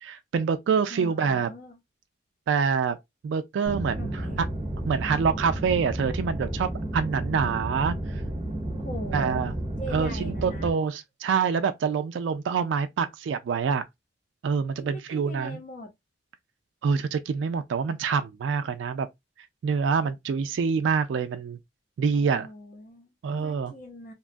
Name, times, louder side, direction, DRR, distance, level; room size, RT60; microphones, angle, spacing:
voice 1, 0.0-1.5 2.5-3.0 3.2-4.5 4.9-7.9 9.1-9.5 9.9-13.8 14.4-15.6 16.8-19.1 19.6-21.6 22.0-22.5 23.2-23.7, right 6 dB, 80° right, 0.3 m, -26 dB
voice 2, 0.9-1.8 4.0-4.4 8.8-9.4 9.8-10.7 14.8-15.9 22.1-24.1, equal, 45° left, 0.7 m, -41 dB
sound 1, 3.7-10.7, right 1 dB, 30° right, 0.6 m, -32 dB
2.9 x 2.3 x 2.4 m
head